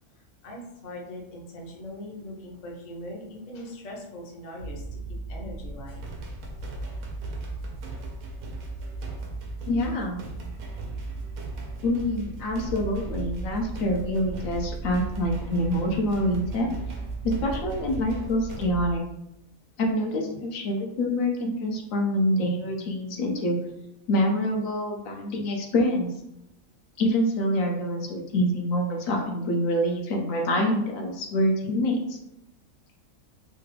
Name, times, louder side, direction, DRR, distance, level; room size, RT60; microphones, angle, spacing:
voice 1, 0.1-5.0 5.3-6.0, left 1 dB, 45° left, -1 dB, 0.6 m, -41 dB
sound 1, 4.6-19.0, right 2 dB, 65° right, 0.8 m, -37 dB
sound 2, 5.9-18.7, right 4 dB, 85° right, 1.1 m, -41 dB
voice 2, 9.7-10.2 11.8-16.7 17.2-19.0 19.8-23.6 24.1-26.1 27.0-32.2, left 1 dB, 75° left, 1 dB, 1.0 m, -26 dB
3.3 x 2.2 x 3.2 m, 0.89 s
omnidirectional pair, 1.4 m